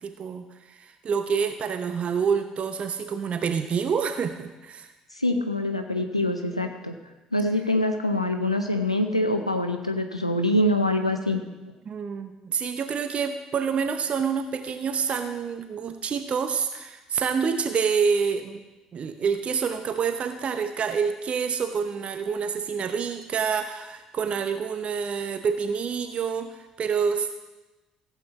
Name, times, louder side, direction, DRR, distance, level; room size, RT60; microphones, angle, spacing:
voice 1, 0.0-4.9 11.9-18.6 18.9-27.3, right 6 dB, 40° right, 8 dB, 0.8 m, -27 dB
voice 2, 5.1-6.9 7.3-11.4, left 1 dB, 90° left, 6 dB, 0.6 m, -25 dB
15.5 x 8.3 x 4.1 m, 1.1 s
figure-of-eight pair, 50°, 3 cm